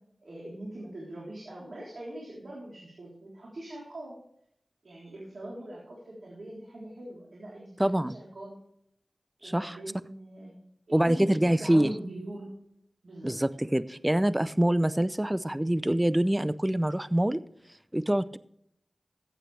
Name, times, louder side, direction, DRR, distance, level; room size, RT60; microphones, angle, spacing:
voice 1, 0.2-4.2 4.8-8.5 9.4-10.6 10.9-12.5 13.0-13.4, right 1 dB, 70° right, -4 dB, 3.6 m, -42 dB
voice 2, 7.8-8.1 9.4-9.8 10.9-11.9 13.2-17.4 17.9-18.4, right 1 dB, 15° right, 15 dB, 0.5 m, -25 dB
14.5 x 9.0 x 3.3 m, 0.72 s
cardioid pair, 40°, 0 cm